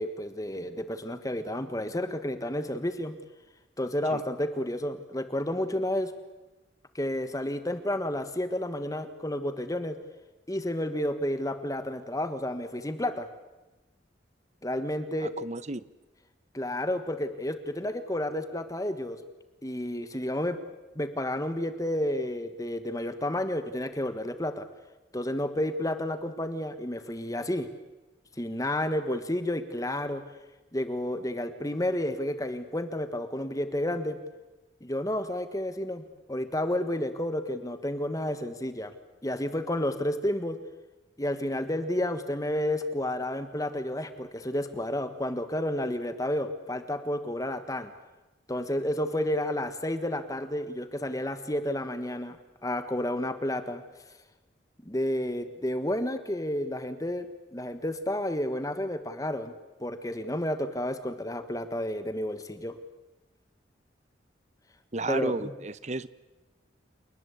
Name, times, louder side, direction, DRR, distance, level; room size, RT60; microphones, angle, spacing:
voice 1, 0.0-3.2 3.8-6.1 6.9-10.0 10.5-13.3 14.6-15.3 16.5-19.2 19.6-20.6 20.9-24.7 25.1-27.7 28.4-30.2 30.7-34.2 34.8-36.0 36.3-38.9 39.2-40.6 41.2-47.9 48.5-52.4 52.6-53.8 54.8-57.3 57.5-59.5 59.8-62.8 65.1-65.5, left 1 dB, 20° left, 10 dB, 1.4 m, -31 dB
voice 2, 15.2-15.9 64.9-66.1, right 2 dB, 40° right, 16 dB, 0.9 m, -33 dB
29.0 x 19.5 x 8.4 m, 1.1 s
head